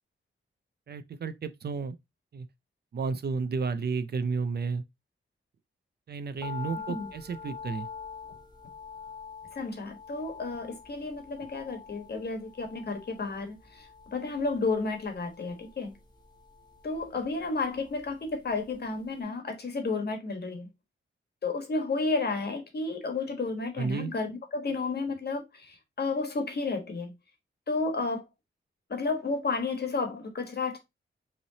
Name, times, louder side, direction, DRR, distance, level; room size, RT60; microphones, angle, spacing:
voice 1, 0.9-2.0 2.3-2.5 2.9-4.8 6.1-7.9 23.8-24.1, right 4 dB, 50° right, 0.5 m, -32 dB
sound 1, 6.4-18.7 19.0-19.1, left 6 dB, 20° left, 0.9 m, -45 dB
voice 2, 9.5-15.9 16.8-20.7 21.4-27.1 27.7-28.2 28.9-30.8, left 3 dB, 50° left, 1.3 m, -32 dB
5.5 x 3.2 x 2.7 m
wide cardioid pair, 180°, 21 cm